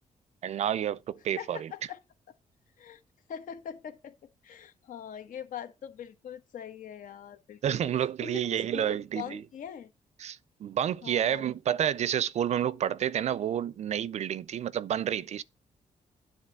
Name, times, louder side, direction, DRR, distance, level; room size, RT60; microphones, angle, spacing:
voice 1, 0.4-1.7 7.6-9.4 10.2-15.4, right 10 dB, 55° right, 0.4 m, -29 dB
voice 2, 1.4-2.0 2.8-3.0 3.3-4.1 4.4-9.9 11.0-11.6, left 8 dB, 80° left, 1.3 m, -42 dB
9.9 x 3.9 x 6.5 m
wide cardioid pair, 145°, 14 cm